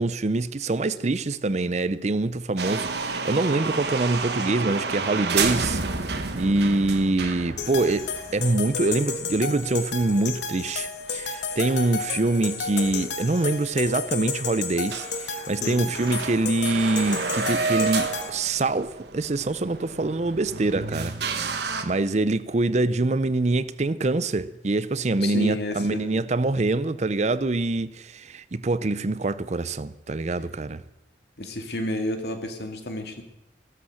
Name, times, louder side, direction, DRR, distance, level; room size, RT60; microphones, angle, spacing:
voice 1, 0.0-30.8, right 2 dB, 40° right, 0.6 m, -25 dB
sound 1, 2.6-10.8 11.0-11.1 11.7-11.8 12.7-12.8 13.0-13.1 13.6-13.7 14.0-14.4 14.6-14.7 14.9-21.8, right 4 dB, 70° right, 1.4 m, -30 dB
sound 2, 7.6-18.3, left 5 dB, 90° left, 1.6 m, -32 dB
voice 2, 25.2-26.2 31.4-33.2, left 1 dB, 65° left, 2.2 m, -31 dB
16.0 x 13.0 x 6.5 m
head